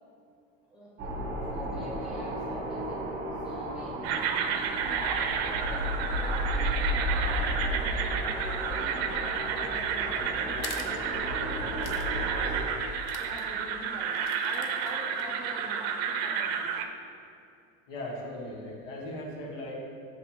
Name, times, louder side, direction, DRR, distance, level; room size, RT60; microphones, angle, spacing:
sound 1, 1.0-12.6, equal, 30° right, 1.1 m, -33 dB
voice 1, 1.5-3.0 3.4-12.6 13.2-14.2 14.4-16.7, equal, 5° right, -6 dB, 0.4 m, -45 dB
sound 2, 4.0-16.9, right 7 dB, 85° right, 0.5 m, -31 dB
sound 3, 10.6-10.9 11.8-12.1 12.4-12.5 13.0-13.4 14.1-15.3, left 7 dB, 50° left, 0.5 m, -43 dB
voice 2, 17.9-19.7, left 1 dB, 70° left, -2 dB, 1.4 m, -38 dB
7.1 x 3.3 x 4.2 m, 2.5 s
cardioid pair, 165°, 30 cm